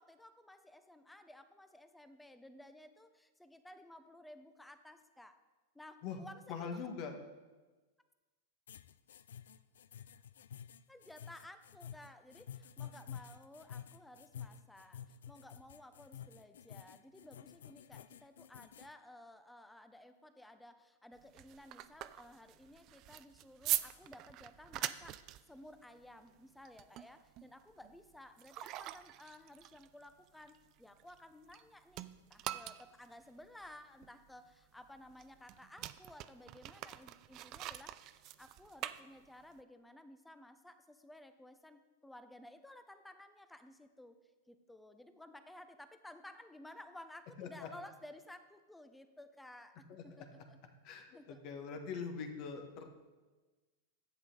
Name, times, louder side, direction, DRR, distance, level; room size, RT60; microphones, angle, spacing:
voice 1, 0.0-5.4 5.7-6.7 10.9-38.0 38.4-44.2 44.5-50.6 51.1-51.4, left 1 dB, 5° left, 9 dB, 0.7 m, -55 dB
voice 2, 6.5-7.2 47.4-47.7 49.9-50.4 50.8-52.9, left 5 dB, 50° left, 5 dB, 1.5 m, -43 dB
sound 1, 8.7-18.9, left 9 dB, 75° left, 0.3 m, -50 dB
sound 2, 21.1-31.6 31.9-39.6, right 14 dB, 45° right, 0.4 m, -44 dB
10.5 x 8.1 x 3.9 m, 1.3 s
hypercardioid pair, 105°, 0 cm